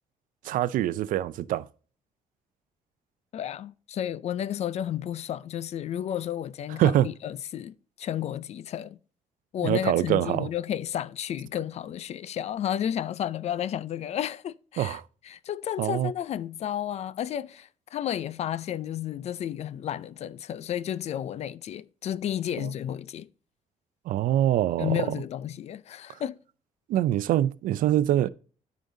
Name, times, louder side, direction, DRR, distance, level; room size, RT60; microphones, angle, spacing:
voice 1, 0.5-1.6 6.8-7.1 9.6-10.5 14.8-15.0 15.8-16.1 22.6-22.7 24.1-25.2 26.9-28.3, right 12 dB, 85° right, 0.5 m, -24 dB
voice 2, 3.3-9.0 9.5-15.0 15.2-23.3 24.8-26.3, left 10 dB, 50° left, 0.4 m, -32 dB
13.0 x 5.1 x 2.7 m
cardioid pair, 145°, 14 cm